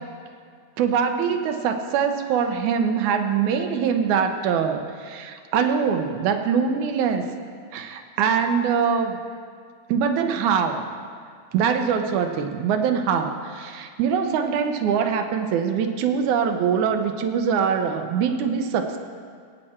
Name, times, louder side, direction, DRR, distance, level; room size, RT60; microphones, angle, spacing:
voice 1, 0.8-7.3 7.7-9.2 9.9-10.8 11.5-19.0, right 7 dB, 90° right, 6 dB, 2.2 m, -23 dB
16.5 x 8.7 x 4.3 m, 2.1 s
omnidirectional pair, 3.3 m